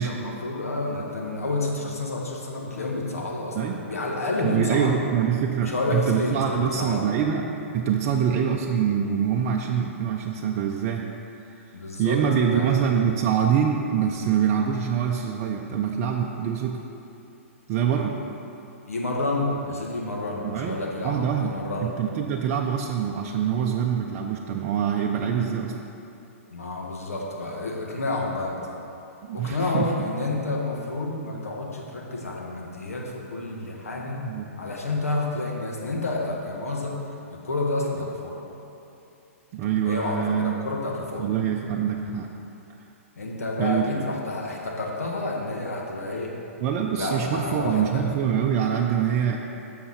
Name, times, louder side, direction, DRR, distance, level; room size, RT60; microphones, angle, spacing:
voice 1, 0.0-5.0 5.6-7.1 11.7-12.2 12.5-13.0 18.9-21.9 26.5-28.7 29.3-34.2 34.6-37.0 37.3-38.4 39.8-41.3 43.2-46.3 46.9-48.0, left 2 dB, 90° left, -1 dB, 1.6 m, -29 dB
voice 2, 4.4-11.1 12.0-16.8 17.7-18.2 20.4-20.8 21.0-21.5 21.8-25.8 29.3-29.9 34.2-34.5 39.5-40.5 41.2-42.3 43.6-43.9 46.6-49.4, right 8 dB, 40° right, 0 dB, 0.6 m, -24 dB
11.0 x 6.8 x 4.2 m, 2.8 s
hypercardioid pair, 125°, 8 cm